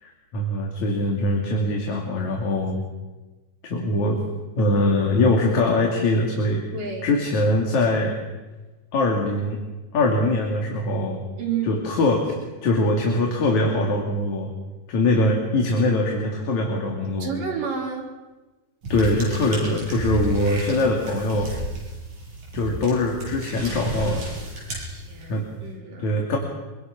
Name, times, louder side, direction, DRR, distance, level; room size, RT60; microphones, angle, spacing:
voice 1, 0.0-2.8 3.7-4.2 4.6-6.6 7.0-8.1 8.9-9.6 9.9-11.2 11.6-12.3 12.6-14.5 14.9-17.3 18.9-21.5 22.5-24.3 25.3-25.4 26.0-26.4, left 2 dB, 65° left, 0 dB, 3.9 m, -22 dB
voice 2, 6.7-7.1 11.4-11.8 17.2-18.1 24.8-26.1, right 6 dB, 85° right, -1 dB, 6.3 m, -31 dB
sound 1, 18.8-25.5, right 1 dB, 65° right, 9.4 m, -33 dB
25.0 x 24.5 x 6.0 m, 1.2 s
omnidirectional pair, 3.7 m